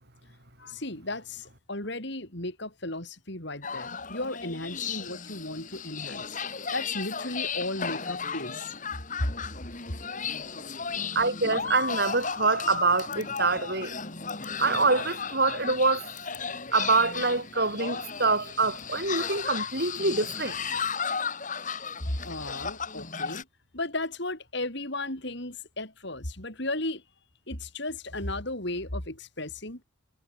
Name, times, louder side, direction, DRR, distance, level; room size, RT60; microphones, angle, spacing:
voice 1, 0.6-6.4 6.7-8.7 9.2-9.3 22.1-23.5 23.7-27.0 27.5-29.8, left 2 dB, 55° left, 5.0 m, -35 dB
sound 1, 3.6-23.4, left 6 dB, 35° left, 2.7 m, -35 dB
voice 2, 11.2-14.0 14.6-16.1 16.7-20.7, right 3 dB, 50° right, 5.7 m, -25 dB
head